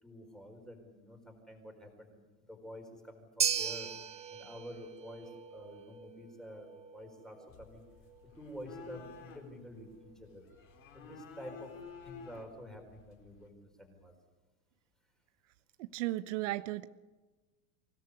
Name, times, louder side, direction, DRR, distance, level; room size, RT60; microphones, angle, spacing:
voice 1, 0.0-3.9 4.3-7.8 8.3-10.5 10.9-11.7 12.0-14.1, equal, ahead, 4 dB, 4.4 m, -49 dB
sound 1, 3.4-11.8, right 7 dB, 15° right, 1.2 m, -40 dB
sound 2, 7.5-13.5, left 6 dB, 30° left, 4.4 m, -53 dB
voice 2, 15.8-16.9, right 17 dB, 60° right, 11 dB, 1.0 m, -35 dB
25.0 x 17.5 x 8.3 m, 1.2 s
supercardioid pair, 160°, 41 cm